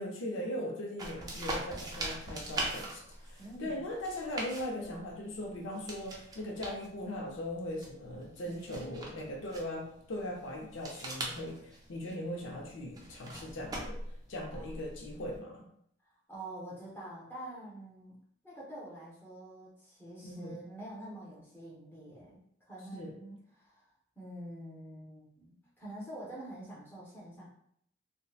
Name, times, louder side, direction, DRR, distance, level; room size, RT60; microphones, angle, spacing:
voice 1, 0.0-14.0 14.3-15.6 20.2-20.6 22.9-23.2, left 1 dB, 90° left, 1 dB, 0.5 m, -39 dB
sound 1, 1.0-15.4, right 2 dB, 20° right, 0.3 m, -43 dB
voice 2, 3.4-3.8 8.4-8.6 14.5-14.8 16.3-18.2 18.4-23.9 24.2-27.5, right 1 dB, 10° left, -7 dB, 0.7 m, -46 dB
2.6 x 2.1 x 2.3 m, 0.70 s
head